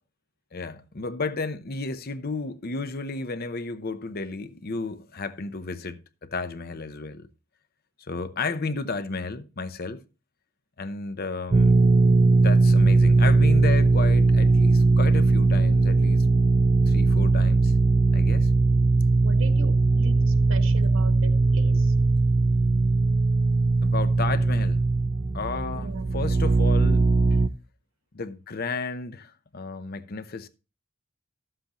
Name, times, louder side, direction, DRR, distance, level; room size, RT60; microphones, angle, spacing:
voice 1, 0.5-7.3 8.1-10.0 10.8-11.8 12.2-16.3 16.9-17.7 18.1-18.5 23.8-24.8 25.3-27.1 28.1-30.5, left 3 dB, 45° left, 0.7 m, -33 dB
sound 1, 11.5-27.5, right 3 dB, 30° right, 0.4 m, -20 dB
voice 2, 19.2-21.9 25.7-26.1, right 2 dB, 70° right, 1.2 m, -40 dB
13.0 x 7.7 x 3.0 m
head